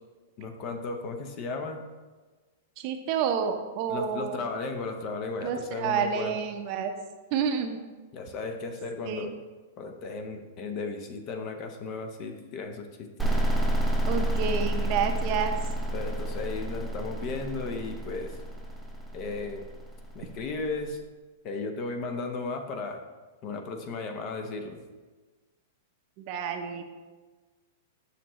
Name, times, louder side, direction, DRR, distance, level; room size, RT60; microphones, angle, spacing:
voice 1, 0.4-1.8 3.9-6.4 8.1-9.3 9.8-13.3 15.9-18.4 19.1-19.7 20.1-21.0 21.4-23.0 23.4-24.8, left 3 dB, 35° left, 6 dB, 0.7 m, -35 dB
voice 2, 2.8-4.4 5.4-6.9 7.3-7.8 9.0-9.3 14.1-15.6 26.3-26.8, right 7 dB, 40° right, 5 dB, 0.6 m, -29 dB
sound 1, 13.2-20.7, right 1 dB, 5° right, 0.6 m, -30 dB
6.8 x 6.1 x 3.1 m, 1.3 s
supercardioid pair, 150°, 0 cm